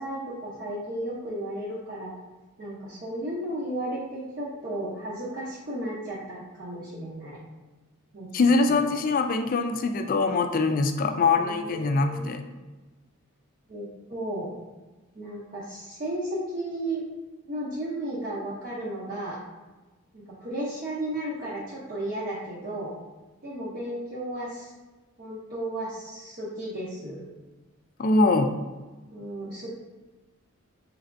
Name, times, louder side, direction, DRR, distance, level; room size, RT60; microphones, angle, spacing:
voice 1, 0.0-2.1 2.6-7.4 8.1-8.3 8.7-8.8 11.2-12.2 13.7-14.5 15.1-17.0 17.5-19.4 20.1-22.9 23.4-24.7 25.2-27.3 29.1-29.7, right 1 dB, 45° right, -8 dB, 0.8 m, -34 dB
voice 2, 8.3-12.4 28.0-28.5, left 3 dB, 40° left, 6 dB, 0.3 m, -23 dB
4.3 x 3.3 x 2.6 m, 1.2 s
head